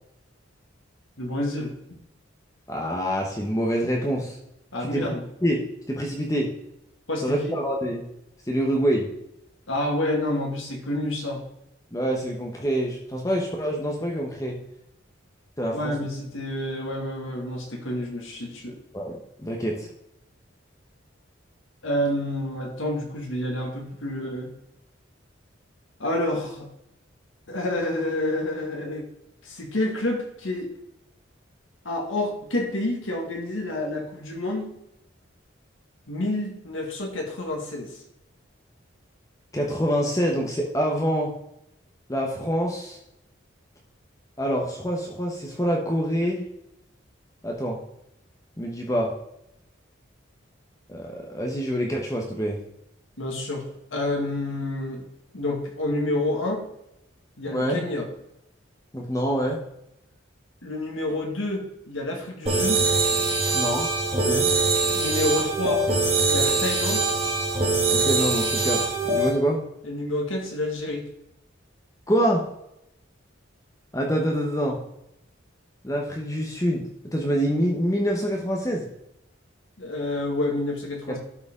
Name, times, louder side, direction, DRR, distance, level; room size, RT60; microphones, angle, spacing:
voice 1, 1.2-1.7 4.7-5.2 7.1-7.6 9.7-11.4 15.7-18.7 21.8-24.5 26.0-26.7 27.5-29.1 29.4-30.7 31.9-34.7 36.1-38.0 53.2-55.0 55.3-56.6 57.4-58.1 60.6-62.9 64.9-65.9 66.3-67.1 69.8-71.0 79.8-81.2, left 1 dB, 80° left, 1 dB, 1.7 m, -28 dB
voice 2, 2.7-4.4 4.8-5.1 5.4-6.5 7.2-8.0 8.5-9.1 11.9-14.5 15.6-15.9 18.9-19.9 39.5-41.3 42.1-43.0 44.4-46.4 47.4-47.8 48.6-49.1 50.9-52.6 57.5-57.8 58.9-59.6 63.5-63.9 64.1-64.5 67.9-69.6 72.1-72.4 73.9-74.8 75.8-78.8 81.1-81.2, equal, 15° left, -1 dB, 0.9 m, -26 dB
sound 1, 62.5-69.3, right 3 dB, 30° right, 2.2 m, -23 dB
12.0 x 4.8 x 3.7 m, 0.80 s
head